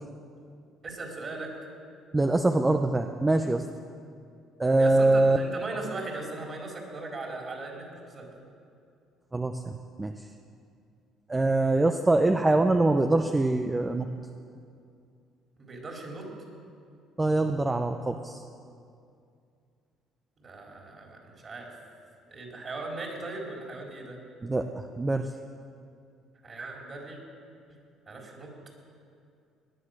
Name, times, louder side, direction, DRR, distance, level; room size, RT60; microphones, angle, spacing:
voice 1, 0.8-1.5 4.8-8.4 15.6-16.3 20.4-21.7 22.3-24.2 26.4-27.2 28.1-28.5, right 2 dB, 35° right, -1 dB, 4.3 m, -38 dB
voice 2, 2.1-3.6 4.6-5.4 9.3-9.6 10.0-10.1 11.3-14.1 17.2-18.4 24.4-24.7 25.0-25.3, right 2 dB, 15° right, 6 dB, 0.7 m, -23 dB
19.0 x 11.0 x 6.6 m, 2.4 s
cardioid pair, 95°, 0 cm